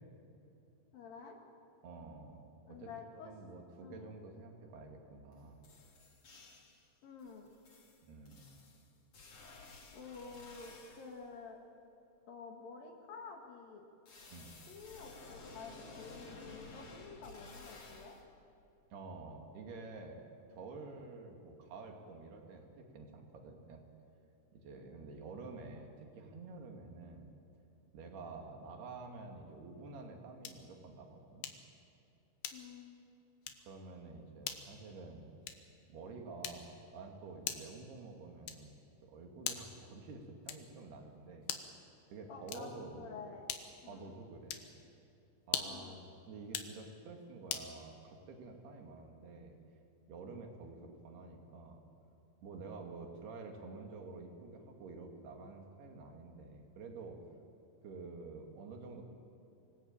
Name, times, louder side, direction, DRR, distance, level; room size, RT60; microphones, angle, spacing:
voice 1, 0.9-1.4 2.7-3.3 3.8-4.1 7.0-7.5 9.9-11.6 12.3-13.8 14.7-18.2 32.5-33.0 42.3-43.5 43.8-44.2 45.6-46.0, left 5 dB, 65° left, 1 dB, 3.5 m, -50 dB
voice 2, 1.8-2.9 3.1-5.6 8.0-8.5 9.5-9.8 14.3-14.5 18.9-20.2 20.5-23.8 24.5-27.3 27.9-31.5 33.7-35.3 35.9-41.5 42.1-43.2 43.9-44.6 45.5-49.6 50.1-51.9 52.4-57.2 57.8-59.0, right 3 dB, 80° right, 3 dB, 4.4 m, -49 dB
sound 1, 5.3-5.4 5.6-6.9 7.2-11.2 14.1-18.2, left 3 dB, 40° left, 3.1 m, -54 dB
sound 2, 30.4-30.7 31.4-31.8 32.4-32.9 33.4-33.7 34.4-34.7 35.4-35.8 36.4-36.8 37.4-37.8 38.4-38.8 39.4-39.8 40.5-40.8 41.4-41.8 42.4-42.9 43.5-43.9 44.5-44.8 45.4-45.9 46.4-46.8 47.5-47.7, left 9 dB, 85° left, 3.4 m, -42 dB
26.0 x 19.0 x 8.9 m, 2.8 s
omnidirectional pair, 4.5 m